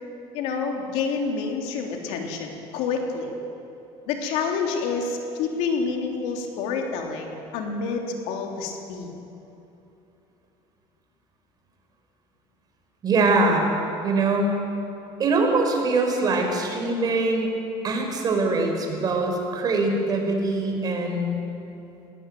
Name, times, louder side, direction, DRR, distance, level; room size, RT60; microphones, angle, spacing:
voice 1, 0.3-3.3 4.1-9.1, left 5 dB, 85° left, 2 dB, 3.3 m, -28 dB
voice 2, 13.0-13.7 14.0-14.6 15.2-17.5 17.8-21.4, right 3 dB, 40° right, 3 dB, 4.8 m, -23 dB
20.5 x 18.0 x 9.4 m, 2.8 s
cardioid pair, 135°, 11 cm